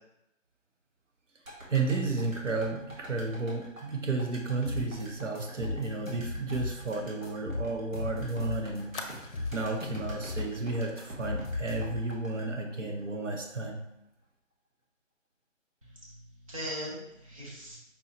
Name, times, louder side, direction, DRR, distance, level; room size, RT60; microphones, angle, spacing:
sound 1, 1.4-13.6 13.9-14.0, right 1 dB, 85° right, 1.6 m, -47 dB
voice 1, 1.7-9.0 9.5-13.8, right 3 dB, 65° right, 3 dB, 0.7 m, -32 dB
Fire, 4.6-8.1 8.3-8.4 8.9-9.9 10.3-10.5 10.8-11.0, left 3 dB, 60° left, 0.7 m, -48 dB
sound 2, 4.6-5.0 5.3-6.9 7.2-8.8 9.1-12.2, left 3 dB, ahead, 0.6 m, -36 dB
voice 2, 15.8-17.8, equal, 25° right, -5 dB, 0.9 m, -40 dB
5.3 x 2.9 x 2.9 m, 0.84 s
figure-of-eight pair, 160°, 39 cm